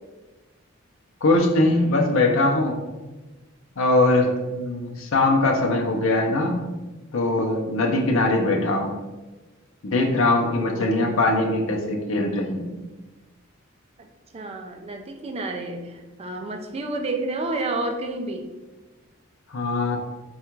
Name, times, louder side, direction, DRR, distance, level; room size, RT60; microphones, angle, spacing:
voice 1, 1.2-2.8 3.8-6.7 7.1-8.9 9.8-12.7 19.5-20.0, left 2 dB, 70° left, 2 dB, 0.6 m, -21 dB
voice 2, 10.7-11.0 14.3-18.5, right 2 dB, 30° right, 4 dB, 0.4 m, -30 dB
3.6 x 2.3 x 4.4 m, 1.2 s
head